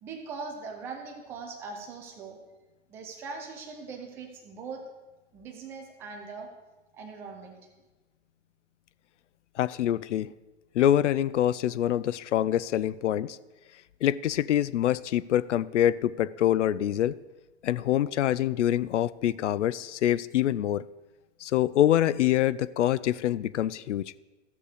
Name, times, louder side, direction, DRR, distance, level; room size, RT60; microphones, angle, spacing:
voice 1, 0.0-2.4 2.9-4.8 5.3-6.5 6.9-7.6, right 4 dB, 5° right, 3 dB, 0.3 m, -41 dB
voice 2, 9.6-10.3 10.8-13.4 14.0-17.2 17.6-20.8 21.4-24.1, left 12 dB, 75° left, 19 dB, 0.5 m, -25 dB
14.0 x 6.6 x 5.0 m, 1.2 s
hypercardioid pair, 135°, 37 cm